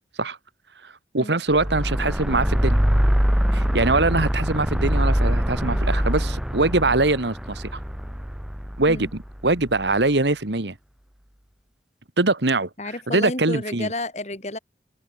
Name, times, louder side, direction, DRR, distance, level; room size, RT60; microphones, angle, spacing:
voice 1, 0.8-2.8 3.5-7.7 8.8-9.1 9.4-10.8 12.2-12.7 13.1-13.9, right 2 dB, 80° right, 1.9 m, -22 dB
sound 1, 1.5-9.8, equal, 5° right, 0.4 m, -23 dB
voice 2, 12.8-14.6, left 1 dB, 40° left, 3.8 m, -31 dB
open air
head